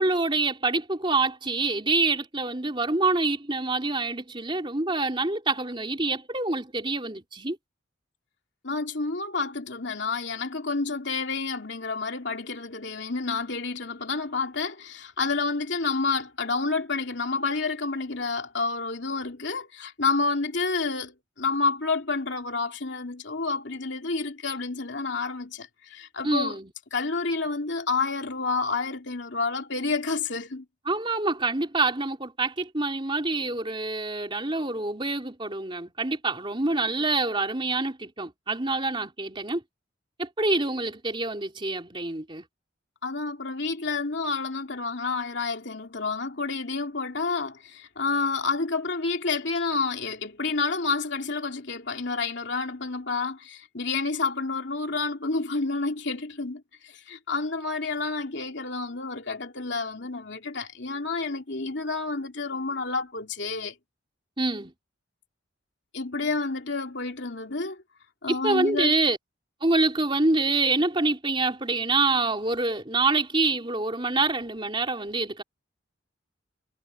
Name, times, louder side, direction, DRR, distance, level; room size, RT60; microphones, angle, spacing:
voice 1, 0.0-7.6 26.2-26.7 30.9-39.6 40.2-42.4 64.4-64.7 68.3-69.2 69.6-75.4, right 3 dB, 25° right, 3.2 m, -26 dB
voice 2, 8.6-26.6 26.9-30.6 43.0-63.7 65.9-67.8 68.2-69.0, left 4 dB, 60° left, 2.9 m, -29 dB
head